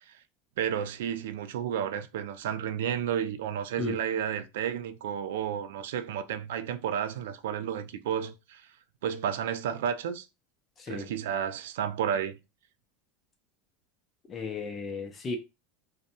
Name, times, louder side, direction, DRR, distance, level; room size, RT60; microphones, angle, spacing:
voice 1, 0.6-8.6 9.0-10.3 10.9-12.4, right 8 dB, 85° right, 0.3 m, -32 dB
voice 2, 14.3-15.4, left 4 dB, 25° left, 0.4 m, -34 dB
2.6 x 2.0 x 2.7 m
supercardioid pair, 145°, 0 cm